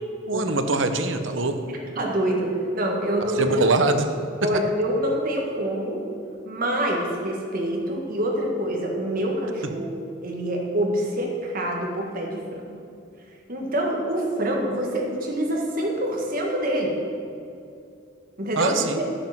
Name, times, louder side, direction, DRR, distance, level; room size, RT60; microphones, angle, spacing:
voice 1, 0.3-1.6 3.3-4.1 4.4-4.5 9.6-9.7 18.6-19.0, right 3 dB, 85° right, 8 dB, 0.9 m, -23 dB
voice 2, 2.0-3.6 4.4-6.0 6.5-12.8 13.5-16.9 18.4-19.0, right 1 dB, 50° right, -1 dB, 1.8 m, -26 dB
11.5 x 7.8 x 5.9 m, 2.5 s
head